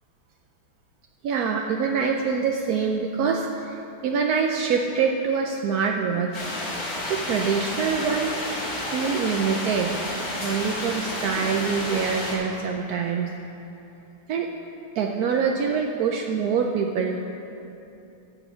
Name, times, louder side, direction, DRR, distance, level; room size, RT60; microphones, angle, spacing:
voice 1, 1.2-3.7 4.0-6.3 7.0-8.3 8.9-9.9 10.4-13.3 14.3-14.5 15.0-17.2, right 6 dB, 75° right, 2 dB, 0.8 m, -25 dB
sound 1, 6.3-12.3, left 1 dB, 55° left, 3.2 m, -31 dB
14.0 x 5.0 x 7.7 m, 2.9 s
omnidirectional pair, 2.2 m